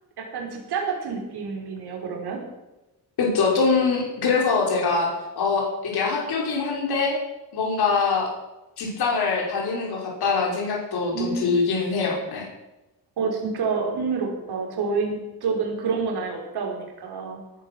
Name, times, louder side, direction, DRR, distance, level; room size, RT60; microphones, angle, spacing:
voice 1, 0.2-2.4 11.1-11.5 13.2-17.4, right 5 dB, 80° right, 1 dB, 5.0 m, -28 dB
voice 2, 3.2-5.1 5.4-7.2 7.5-8.3 8.8-12.5, left 4 dB, 80° left, -1 dB, 5.2 m, -23 dB
19.0 x 12.0 x 6.1 m, 1.0 s
wide cardioid pair, 165°, 39 cm